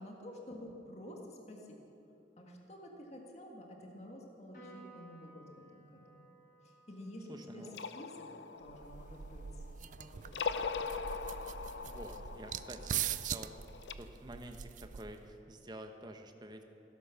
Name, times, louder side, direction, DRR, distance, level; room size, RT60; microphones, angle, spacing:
voice 1, 0.0-1.8 2.4-5.5 5.7-6.2 6.6-7.7 7.9-8.1 8.6-10.9, equal, 40° left, 0 dB, 1.8 m, -50 dB
Piano, 4.5-11.2, right 1 dB, 55° left, 4.5 m, -61 dB
voice 2, 7.3-7.8 11.8-13.6 14.0-16.6, right 1 dB, 25° right, 5 dB, 1.0 m, -49 dB
sound 1, 7.6-9.8 10.2-13.9, left 5 dB, 85° left, 0.6 m, -41 dB
sound 2, 8.7-15.4, right 9 dB, 45° right, 0.4 m, -42 dB
16.5 x 11.0 x 7.0 m, 3.0 s
head